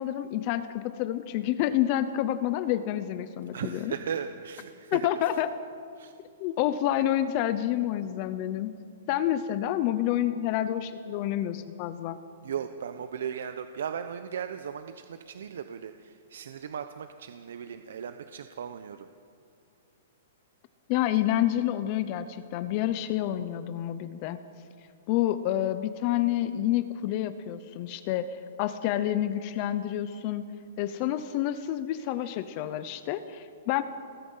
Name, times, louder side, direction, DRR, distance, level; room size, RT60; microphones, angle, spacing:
voice 1, 0.0-3.9 4.9-5.5 6.4-8.7 9.1-12.2 20.9-24.4 25.1-30.5 30.8-33.8, left 12 dB, 30° left, 12 dB, 0.7 m, -28 dB
voice 2, 3.5-5.1 6.0-6.1 12.4-19.1, right 7 dB, 65° right, 8 dB, 1.0 m, -37 dB
29.0 x 20.5 x 5.7 m, 2.4 s
hypercardioid pair, 170°, 0 cm